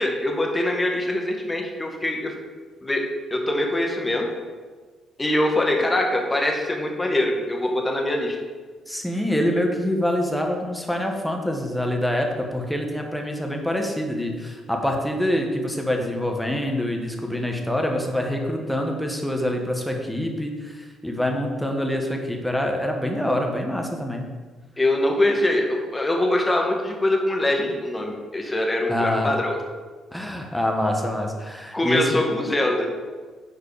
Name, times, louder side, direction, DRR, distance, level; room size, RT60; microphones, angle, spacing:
voice 1, 0.0-2.3 2.8-4.3 5.2-8.4 24.8-29.6 31.7-32.9, left 1 dB, 20° left, 1 dB, 1.7 m, -23 dB
voice 2, 8.9-24.3 28.9-29.3 30.1-32.3, left 1 dB, 5° left, 2 dB, 1.5 m, -25 dB
8.9 x 4.6 x 5.0 m, 1.4 s
hypercardioid pair, 50°, 0 cm